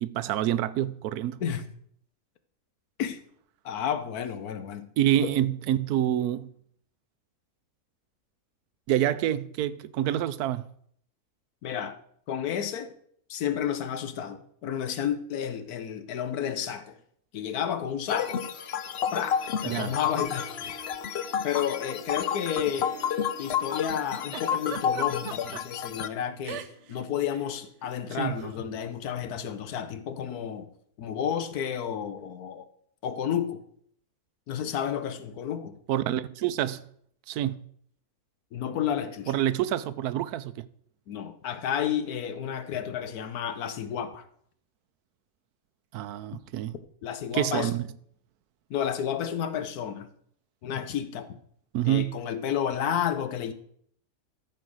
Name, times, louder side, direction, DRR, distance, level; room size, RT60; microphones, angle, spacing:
voice 1, 0.0-1.4 5.0-6.5 8.9-10.7 19.6-19.9 28.1-28.4 35.9-36.8 37.3-37.6 39.3-40.5 45.9-46.7 47.3-47.8 51.7-52.2, right 12 dB, 85° right, 1.1 m, -27 dB
voice 2, 3.6-4.9 5.2-5.3 11.6-12.0 12.3-12.9 13.3-17.0 17.3-18.4 19.1-20.8 21.4-22.9 23.4-30.7 31.0-32.7 33.0-33.6 34.5-35.8 38.5-39.4 41.1-44.2 47.0-47.7 48.7-50.1 50.6-51.4 51.8-53.5, left 9 dB, 85° left, 1.4 m, -31 dB
sound 1, 18.1-26.1, left 8 dB, 60° left, 0.7 m, -30 dB
Harp, 18.4-27.2, left 1 dB, 45° left, 1.4 m, -49 dB
Giggle, 24.3-25.6 26.4-27.0 27.2-27.5 28.4-28.6, right 10 dB, 60° right, 0.8 m, -38 dB
13.5 x 4.6 x 6.2 m
omnidirectional pair, 1.6 m